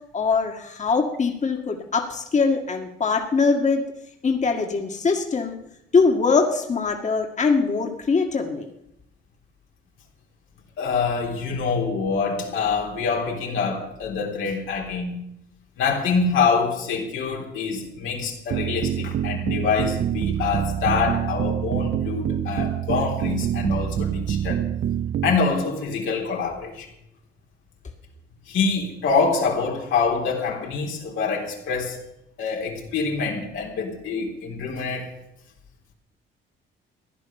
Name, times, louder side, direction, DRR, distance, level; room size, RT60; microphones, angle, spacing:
voice 1, 0.1-3.8 4.2-5.6 5.9-8.7, left 4 dB, 35° left, 2 dB, 1.9 m, -22 dB
voice 2, 10.8-15.2 15.8-24.6 25.2-26.9 28.5-32.0 32.4-35.1, left 5 dB, 85° left, 0 dB, 3.8 m, -25 dB
sound 1, 18.5-25.4, right 10 dB, 60° right, 0.6 m, -26 dB
15.5 x 10.5 x 7.2 m, 0.81 s
cardioid pair, 90°, 20 cm